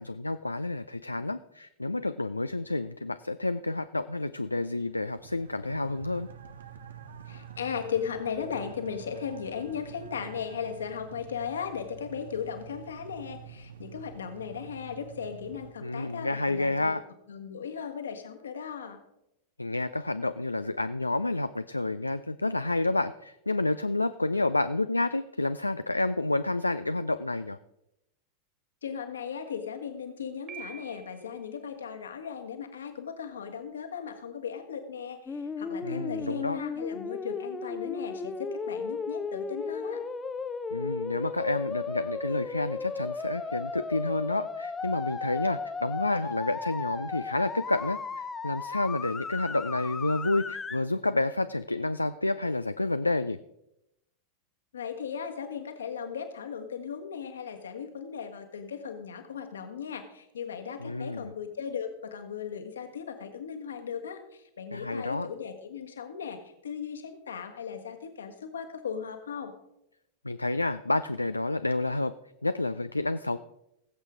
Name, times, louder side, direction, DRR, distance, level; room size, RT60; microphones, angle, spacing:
voice 1, 0.0-6.3 15.8-17.0 19.6-27.6 35.8-36.6 40.7-53.4 60.8-61.3 64.7-65.3 70.2-72.1 72.4-73.4, left 2 dB, 85° left, 12 dB, 0.3 m, -29 dB
sound 1, 4.5-15.7, right 8 dB, 65° right, 0.8 m, -47 dB
voice 2, 7.2-16.9 17.3-19.0 28.8-40.0 54.7-69.5, left 7 dB, 70° left, 6 dB, 1.5 m, -37 dB
Piano, 30.5-31.4, right 7 dB, 30° right, 2.4 m, -45 dB
sound 2, 35.3-50.8, left 4 dB, 15° left, 0.7 m, -35 dB
19.0 x 7.9 x 3.7 m, 0.85 s
figure-of-eight pair, 90°, 0 cm